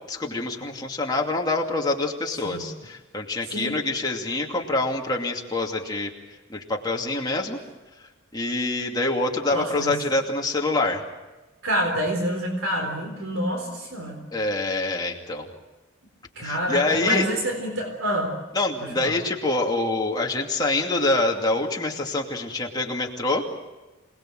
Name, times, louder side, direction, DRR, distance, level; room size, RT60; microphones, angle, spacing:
voice 1, 0.1-6.1 6.5-7.6 8.3-11.0 14.3-15.5 16.4-17.3 18.5-23.4, left 2 dB, 20° left, 0 dB, 2.5 m, -25 dB
voice 2, 9.5-10.0 11.6-14.2 16.4-18.3 18.8-19.2, equal, 75° right, 3 dB, 4.0 m, -27 dB
26.5 x 20.0 x 7.7 m, 1.1 s
head